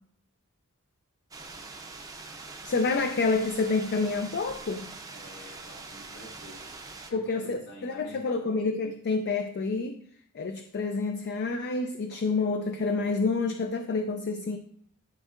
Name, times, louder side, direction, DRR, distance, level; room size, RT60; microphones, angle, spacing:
sound 1, 1.3-7.1, right 3 dB, 15° right, 0.5 m, -43 dB
voice 1, 2.6-4.9 7.1-10.0 10.3-14.6, left 3 dB, 50° left, 6 dB, 0.4 m, -28 dB
voice 2, 5.1-6.7 7.1-8.4, equal, 85° left, -4 dB, 2.6 m, -48 dB
10.5 x 4.3 x 2.5 m, 0.66 s
head